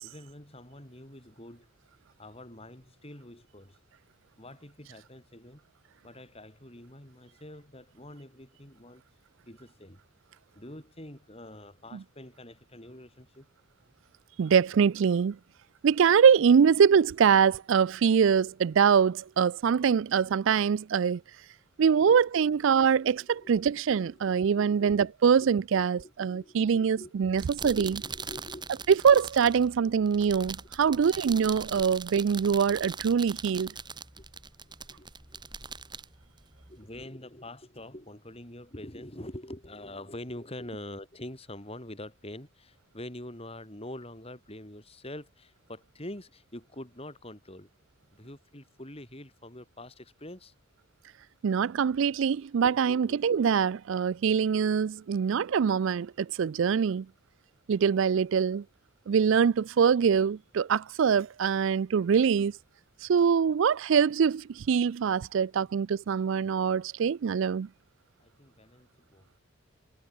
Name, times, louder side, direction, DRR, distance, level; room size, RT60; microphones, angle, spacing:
voice 1, 0.0-1.7 2.2-3.8 4.4-5.7 6.0-9.0 9.5-10.0 10.5-13.5 22.0-22.2 22.7-23.7 24.0-25.5 25.7-29.2 29.6-29.7 33.5-33.8 34.2-34.3 34.9-35.4 36.7-47.7 48.1-50.5 52.9-53.2 68.2-69.4, left 1 dB, 25° left, 4.0 m, -45 dB
voice 2, 14.4-15.4 15.8-21.2 21.8-27.9 28.9-33.7 51.4-57.1 57.7-58.6 59.1-62.5 63.0-67.7, right 7 dB, 55° right, 0.3 m, -24 dB
sound 1, 27.2-37.0, right 5 dB, 20° right, 2.5 m, -42 dB
head